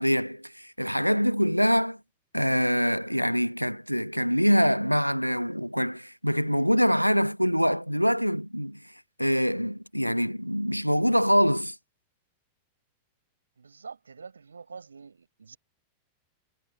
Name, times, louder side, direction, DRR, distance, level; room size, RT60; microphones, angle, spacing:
voice 1, 0.0-2.0 2.3-8.8 9.2-11.8, equal, 90° left, 0.9 m, -24 dB
voice 2, 13.6-15.6, right 5 dB, 75° right, 5.9 m, -45 dB
figure-of-eight pair, 90°, 0 cm